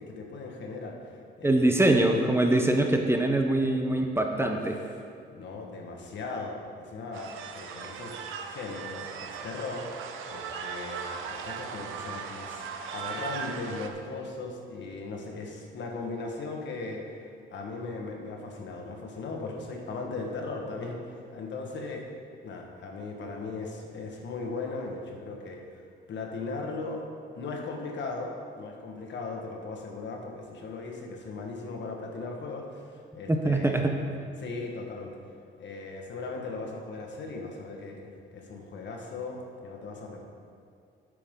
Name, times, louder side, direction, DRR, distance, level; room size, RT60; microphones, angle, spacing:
voice 1, 0.0-2.1 4.4-4.9 5.2-8.1 8.4-9.9 10.3-12.6 12.9-22.0 22.4-25.8 26.1-27.0 27.3-34.0 34.4-35.2 35.6-40.2, left 3 dB, 65° left, 1 dB, 1.6 m, -38 dB
voice 2, 1.4-4.7 33.3-33.9, right 1 dB, 10° right, 3 dB, 0.9 m, -23 dB
sound 1, 7.1-13.9, right 6 dB, 85° right, 0.8 m, -38 dB
10.5 x 8.6 x 3.8 m, 2.3 s
cardioid pair, 90°, 20 cm